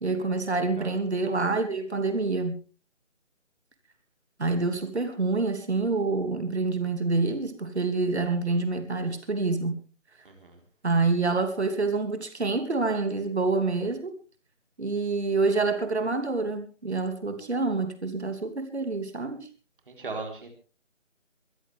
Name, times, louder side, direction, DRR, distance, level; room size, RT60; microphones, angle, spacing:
voice 1, 0.0-2.6 4.4-9.8 10.8-14.1 14.8-19.5, right 3 dB, 60° right, 2.9 m, -27 dB
voice 2, 10.2-10.6 19.9-20.5, right 3 dB, 45° right, 4.3 m, -37 dB
23.5 x 13.0 x 3.6 m
figure-of-eight pair, 160°, 38 cm